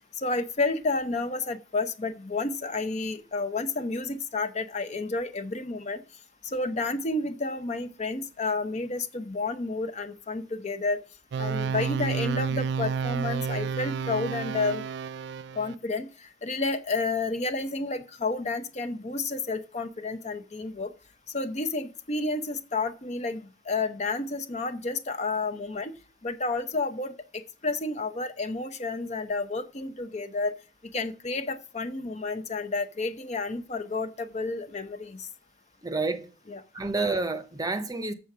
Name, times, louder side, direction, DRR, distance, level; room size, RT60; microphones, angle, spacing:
voice 1, 0.1-6.0 6.4-11.0 11.4-14.8 15.5-20.9 21.3-25.9 26.2-30.5 30.9-35.3 36.5-36.6, left 3 dB, 40° left, 0.7 m, -31 dB
sound 1, 11.3-15.8, right 6 dB, 65° right, 0.3 m, -30 dB
voice 2, 35.8-36.3 36.7-38.1, right 3 dB, 20° right, 0.7 m, -29 dB
6.9 x 6.5 x 5.9 m
head